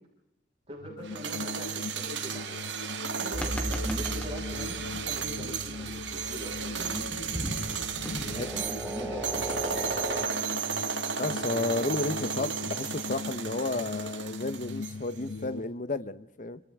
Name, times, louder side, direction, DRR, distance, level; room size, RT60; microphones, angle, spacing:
voice 1, 0.7-7.1 8.5-9.4, equal, 35° right, 6.3 m, -41 dB
sound 1, 0.8-15.6, left 3 dB, 85° left, 0.8 m, -40 dB
sound 2, 1.0-15.2, right 7 dB, 75° right, 1.5 m, -35 dB
sound 3, 3.3-10.3, equal, 5° left, 3.6 m, -36 dB
voice 2, 11.2-16.6, left 2 dB, 45° left, 0.9 m, -32 dB
28.0 x 27.0 x 3.6 m
head